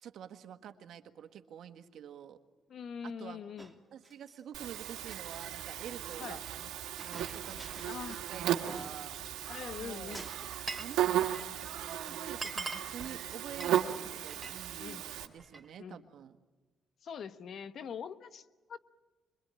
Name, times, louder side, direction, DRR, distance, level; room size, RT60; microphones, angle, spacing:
voice 1, 0.0-2.4 3.0-3.4 3.9-6.7 7.1-9.1 9.8-10.4 10.8-11.1 11.4-16.4, right 9 dB, 70° right, 8 dB, 1.6 m, -48 dB
voice 2, 2.7-3.7 6.2-6.4 7.8-8.2 9.5-10.3 14.8-15.0 15.8-16.1 17.0-18.8, left 7 dB, 60° left, 11 dB, 1.2 m, -43 dB
Chink clink, 3.6-4.4 5.0-6.3 7.0-8.1 8.4-8.5 8.6-9.8 10.1-10.7, right 1 dB, 5° right, 2.6 m, -52 dB
Buzz, 4.5-15.3, right 11 dB, 85° right, 1.7 m, -36 dB
Glass, 10.0-11.0 11.2-11.6 12.0-12.1 12.3-14.6 14.9-15.7, right 3 dB, 20° right, 3.1 m, -42 dB
26.5 x 23.0 x 9.0 m, 1.3 s
cardioid pair, 90°, 0 cm